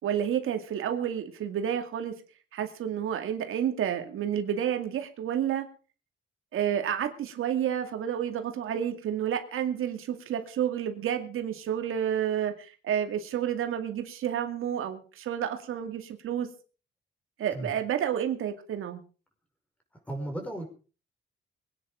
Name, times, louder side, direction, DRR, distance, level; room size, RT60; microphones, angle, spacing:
voice 1, 0.0-2.1 2.5-5.7 6.5-16.5 17.4-19.0, right 9 dB, 80° right, 6 dB, 2.3 m, -30 dB
voice 2, 20.1-20.7, right 1 dB, 5° left, 3 dB, 5.5 m, -35 dB
23.0 x 9.9 x 5.1 m, 0.38 s
cardioid pair, 140°, 21 cm